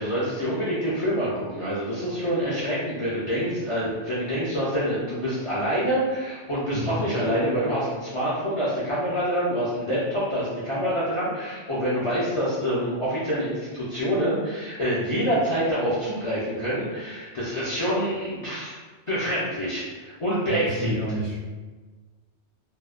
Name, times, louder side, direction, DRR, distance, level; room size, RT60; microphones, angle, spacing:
voice 1, 0.0-18.8 19.1-21.0, equal, 50° left, -9 dB, 0.3 m, -26 dB
voice 2, 20.5-21.4, equal, 75° right, -3 dB, 0.9 m, -29 dB
2.6 x 2.1 x 2.3 m, 1.4 s
omnidirectional pair, 1.2 m